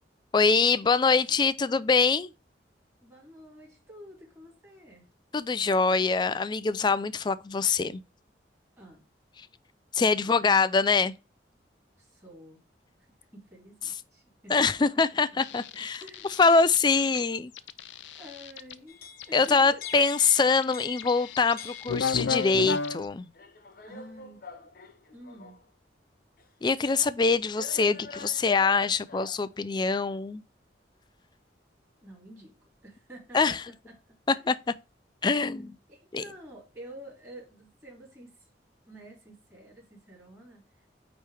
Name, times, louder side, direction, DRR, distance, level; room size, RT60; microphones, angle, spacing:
voice 1, 0.3-2.3 5.3-8.0 9.9-11.1 14.5-16.0 16.4-17.5 19.3-23.3 26.6-30.4 33.3-33.6 34.5-34.6 35.2-35.8 36.1-36.2, left 4 dB, 25° left, 0.3 m, -24 dB
voice 2, 3.0-5.0 8.8-9.1 11.9-12.6 13.3-14.7 15.3-16.3 18.1-20.1 23.8-24.4 25.1-25.6 32.0-32.5 32.8-33.6 33.8-34.4 35.6-38.5 38.8-40.8, equal, 15° right, 3.1 m, -49 dB
sound 1, 15.4-17.2 17.6-18.7 19.2-23.1, left 5 dB, 85° left, 0.5 m, -34 dB
sound 2, 18.9-22.5 23.3-25.7 26.4-26.5 27.5-29.5, left 4 dB, 50° left, 0.8 m, -46 dB
9.0 x 3.1 x 3.4 m
head